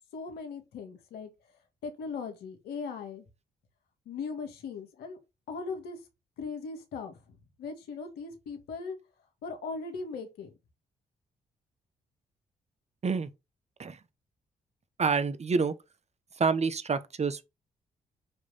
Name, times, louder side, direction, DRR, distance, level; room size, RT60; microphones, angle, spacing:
voice 1, 0.1-1.3 1.8-3.2 4.1-5.2 5.5-6.0 6.4-9.0 9.4-10.5, left 4 dB, 85° left, 2.3 m, -39 dB
voice 2, 15.0-15.7 16.4-17.4, right 5 dB, 45° right, 1.3 m, -27 dB
9.4 x 3.3 x 5.8 m
supercardioid pair, 55°, 16 cm